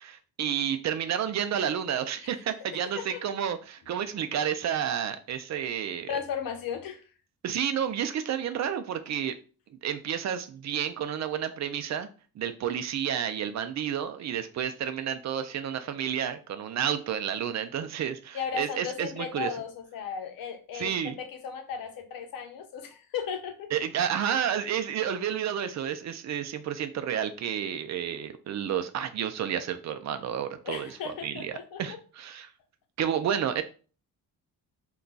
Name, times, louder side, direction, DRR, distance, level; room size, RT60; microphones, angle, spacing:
voice 1, 0.0-6.2 7.4-9.3 9.8-12.1 12.4-19.5 20.7-21.2 23.7-30.9 31.2-31.5 31.8-32.5 33.0-33.6, right 9 dB, 50° right, 9 dB, 0.4 m, -30 dB
voice 2, 6.1-7.0 18.3-23.7 30.6-32.0, left 7 dB, 70° left, 5 dB, 0.8 m, -36 dB
2.3 x 2.2 x 3.9 m, 0.37 s
cardioid pair, 105°, 36 cm